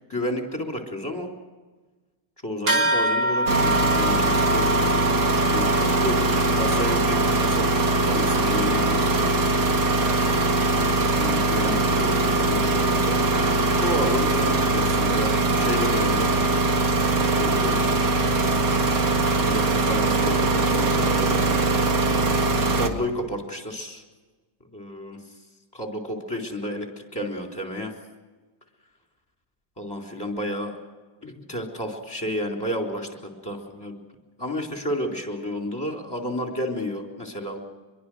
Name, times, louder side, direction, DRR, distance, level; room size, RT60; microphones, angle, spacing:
voice 1, 0.1-1.3 2.4-5.0 5.5-6.2 6.5-7.7 8.0-9.4 11.1-13.4 13.8-16.3 17.4-18.6 19.2-21.5 22.7-24.0 24.7-25.2 25.7-27.9 29.8-30.8 31.2-33.1 33.4-34.0 34.4-37.6, equal, 15° left, 1 dB, 3.9 m, -31 dB
sound 1, 2.7-12.5, right 1 dB, 70° right, 3.8 m, -29 dB
sound 2, 3.5-22.9, right 2 dB, 85° right, 2.6 m, -21 dB
25.5 x 22.5 x 6.3 m, 1.3 s
omnidirectional pair, 1.8 m